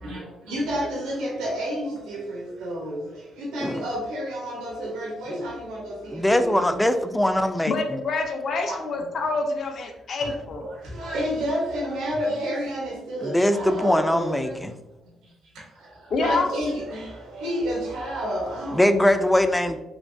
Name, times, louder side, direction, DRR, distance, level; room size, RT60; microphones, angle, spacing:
voice 1, 0.0-3.0 3.4-6.8 8.7-8.8 10.6-14.6 16.2-18.9, equal, 90° right, 0.9 m, -30 dB
voice 2, 6.1-8.0 13.2-14.7 18.7-19.8, left 1 dB, 10° left, 0.3 m, -22 dB
voice 3, 7.7-10.7 16.1-16.5, left 3 dB, 55° left, 0.6 m, -26 dB
3.3 x 3.0 x 2.6 m
cardioid pair, 90°, 0 cm